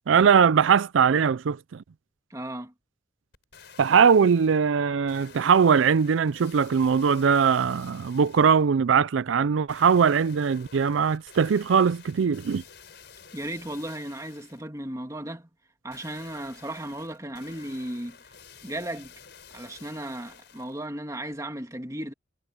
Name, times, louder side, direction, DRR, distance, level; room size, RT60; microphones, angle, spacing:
voice 1, 0.1-1.6 3.8-12.6, right 6 dB, 85° right, 0.4 m, -21 dB
voice 2, 2.3-2.7 13.3-15.5 15.8-18.2 18.6-19.1 19.5-22.1, right 1 dB, 15° right, 2.3 m, -35 dB
sound 1, 3.3-4.6 5.1-8.7 9.7-14.7 15.9-20.9 21.3-21.4, left 6 dB, 60° left, 6.1 m, -50 dB
head